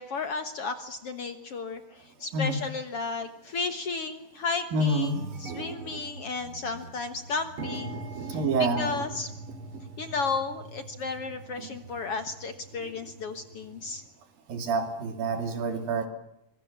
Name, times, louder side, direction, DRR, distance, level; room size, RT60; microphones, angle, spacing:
voice 1, 0.0-9.3 10.0-14.0, left 4 dB, 55° left, 9 dB, 1.8 m, -34 dB
sound 1, 2.5-2.6 3.4-3.6 4.0-4.1 4.4-14.1, right 3 dB, 40° right, 3.2 m, -42 dB
voice 2, 4.7-5.3 8.3-8.9 14.5-16.1, right 2 dB, 80° right, 8 dB, 4.3 m, -27 dB
24.5 x 22.0 x 7.3 m, 0.84 s
omnidirectional pair, 4.0 m